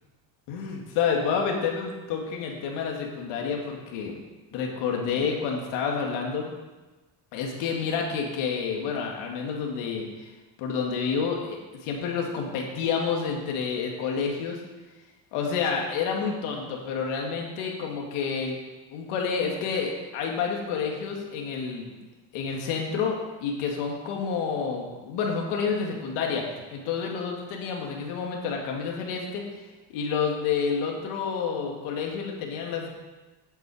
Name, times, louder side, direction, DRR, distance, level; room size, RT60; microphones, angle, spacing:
voice 1, 0.5-4.2 4.5-6.6 7.3-10.3 10.6-14.6 15.3-18.6 18.9-21.9 22.3-29.4 29.9-32.9, left 6 dB, 85° left, 0 dB, 2.3 m, -29 dB
10.0 x 8.1 x 5.0 m, 1.2 s
cardioid pair, 145°, 49 cm